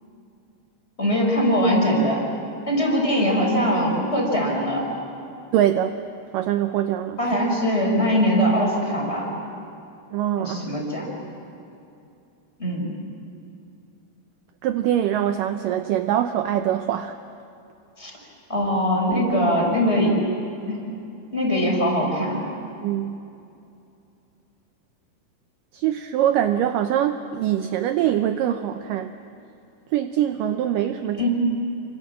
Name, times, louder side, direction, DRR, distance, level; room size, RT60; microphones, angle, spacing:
voice 1, 1.0-2.2 2.7-4.9 7.2-9.3 10.4-11.1 12.6-12.9 18.0-18.1 18.5-20.2 20.7-20.8 21.3-22.4 31.1-31.3, equal, 15° left, -2 dB, 5.6 m, -21 dB
voice 2, 5.5-6.0 6.3-7.2 10.1-10.6 14.6-17.1 22.8-23.2 25.7-29.1 29.9-31.3, right 11 dB, 75° right, 8 dB, 2.1 m, -23 dB
28.5 x 25.5 x 7.6 m, 2.6 s
omnidirectional pair, 4.4 m